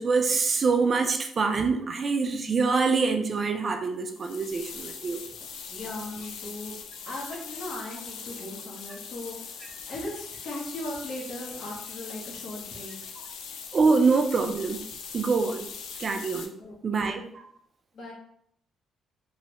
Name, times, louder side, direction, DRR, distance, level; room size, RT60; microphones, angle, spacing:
voice 1, 0.0-5.2 13.7-14.8 15.1-15.7 16.0-16.5 16.8-17.4, right 4 dB, 40° right, 5 dB, 0.4 m, -25 dB
sound 1, 4.0-16.5, left 6 dB, 85° left, 0.3 m, -41 dB
voice 2, 5.7-6.7 7.1-12.9 16.6-17.2 17.9-18.1, left 1 dB, 65° left, -2 dB, 1.0 m, -38 dB
3.1 x 2.0 x 2.9 m, 0.70 s
cardioid pair, 90°, 0 cm